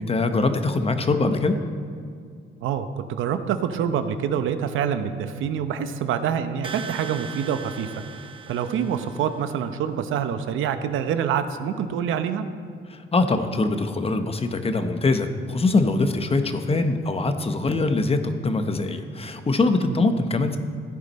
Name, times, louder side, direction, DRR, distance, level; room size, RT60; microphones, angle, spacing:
voice 1, 0.0-1.6 12.9-20.6, left 3 dB, 30° left, 8 dB, 1.0 m, -23 dB
voice 2, 2.6-7.9 8.5-12.4 19.9-20.0, right 8 dB, 85° right, 9 dB, 0.8 m, -26 dB
sound 1, 6.6-9.5, right 6 dB, 25° right, 0.7 m, -39 dB
15.0 x 9.9 x 4.3 m, 2.2 s
cardioid pair, 90°, 20 cm